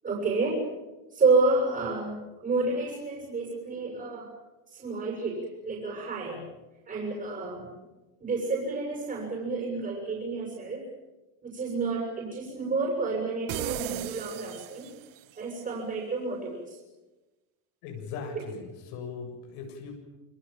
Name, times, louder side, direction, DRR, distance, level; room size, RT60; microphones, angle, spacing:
voice 1, 0.0-0.6 1.1-4.3 4.7-6.5 6.9-7.7 8.2-10.8 11.4-14.9 15.3-16.8, right 3 dB, 20° right, -2 dB, 7.5 m, -29 dB
sound 1, 13.5-15.3, right 17 dB, 55° right, 1.0 m, -36 dB
voice 2, 17.8-20.0, left 5 dB, 85° left, 2 dB, 7.9 m, -39 dB
28.5 x 25.0 x 7.5 m, 1.1 s
cardioid pair, 165°, 41 cm